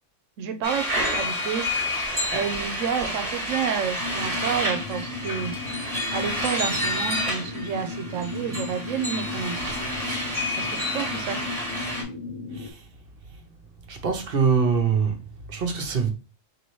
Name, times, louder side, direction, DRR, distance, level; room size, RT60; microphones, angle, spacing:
voice 1, 0.4-1.6 2.3-5.5 6.1-9.7 10.6-10.7 10.9-11.4, right 7 dB, 85° right, 1.0 m, -29 dB
sound 1, 0.6-12.0, equal, 30° right, 1.2 m, -29 dB
sound 2, 4.0-12.7, left 4 dB, 80° left, 1.1 m, -36 dB
voice 2, 12.5-12.8 13.9-15.2 15.5-16.1, right 6 dB, 55° right, 0.9 m, -24 dB
4.2 x 3.3 x 3.0 m
omnidirectional pair, 1.3 m